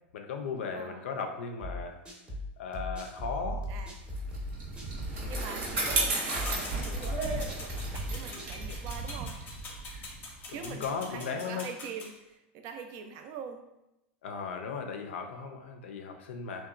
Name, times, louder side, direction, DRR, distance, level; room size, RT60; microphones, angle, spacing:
voice 1, 0.1-2.0 2.6-3.7 10.5-11.7 14.2-16.7, left 5 dB, 85° left, 4 dB, 0.4 m, -36 dB
voice 2, 0.7-1.0 3.7-3.9 5.3-9.4 10.3-13.7, right 6 dB, 55° right, 6 dB, 0.3 m, -43 dB
sound 1, 1.6-8.8, left 1 dB, 15° right, 0.6 m, -38 dB
Bicycle, 4.2-10.9, right 3 dB, 75° right, 0.9 m, -34 dB
sound 2, 6.4-12.1, left 3 dB, 30° left, 0.6 m, -45 dB
2.8 x 2.2 x 2.4 m, 0.89 s
supercardioid pair, 115°, 6 cm